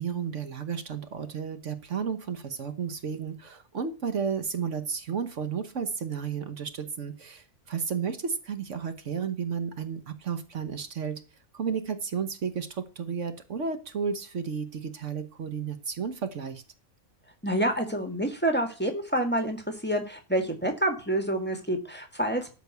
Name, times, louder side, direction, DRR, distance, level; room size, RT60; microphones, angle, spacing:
voice 1, 0.0-11.2 11.5-16.6, right 6 dB, 60° right, 10 dB, 1.4 m, -32 dB
voice 2, 17.4-22.5, right 1 dB, 10° left, 4 dB, 1.7 m, -28 dB
13.0 x 4.7 x 8.0 m, 0.36 s
omnidirectional pair, 1.4 m